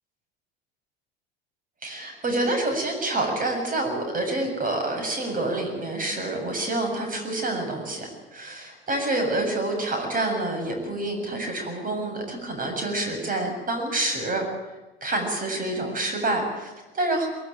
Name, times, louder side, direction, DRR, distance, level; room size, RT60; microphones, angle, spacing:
voice 1, 1.8-14.4 15.0-17.3, right 2 dB, 30° right, 4 dB, 7.9 m, -27 dB
23.5 x 20.0 x 9.1 m, 1.1 s
figure-of-eight pair, 70°, 30 cm